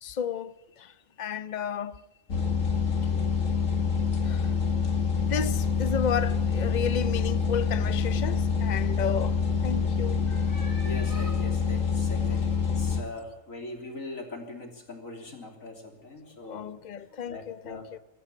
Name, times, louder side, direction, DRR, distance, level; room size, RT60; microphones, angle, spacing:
voice 1, 0.0-2.0 4.2-4.5 5.2-9.4 9.6-10.2 16.5-18.0, left 7 dB, 40° left, 0.8 m, -33 dB
sound 1, 2.3-13.0, left 5 dB, 70° left, 2.1 m, -26 dB
voice 2, 10.3-16.7 17.1-17.9, left 2 dB, 90° left, 3.9 m, -41 dB
22.5 x 14.5 x 8.9 m
omnidirectional pair, 1.4 m